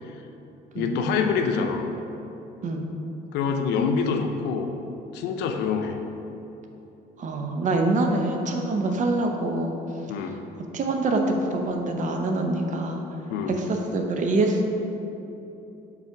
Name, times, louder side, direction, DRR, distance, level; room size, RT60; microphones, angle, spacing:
voice 1, 0.7-1.9 3.3-4.8 5.1-6.0 8.8-9.0 10.1-10.4 13.3-13.5, left 5 dB, 85° left, 5 dB, 0.6 m, -26 dB
voice 2, 7.2-9.7 10.7-13.0 13.6-14.7, right 2 dB, 45° right, 3 dB, 0.8 m, -25 dB
5.7 x 4.0 x 5.8 m, 2.9 s
cardioid pair, 110°, 17 cm